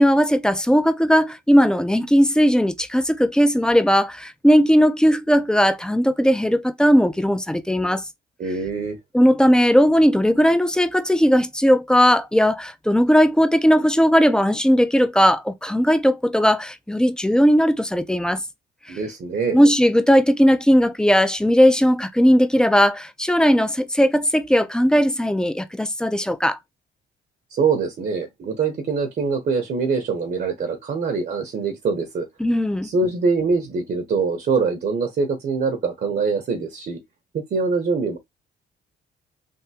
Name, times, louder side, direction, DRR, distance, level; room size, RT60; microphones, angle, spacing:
voice 1, 0.0-8.0 9.1-18.4 19.5-26.6 32.4-32.9, equal, 5° left, 0.5 m, -17 dB
voice 2, 8.4-9.0 18.9-19.7 27.5-32.3 32.8-37.0 37.3-38.2, right 4 dB, 50° right, 0.9 m, -24 dB
3.5 x 2.6 x 2.8 m
cardioid pair, 90°, 20 cm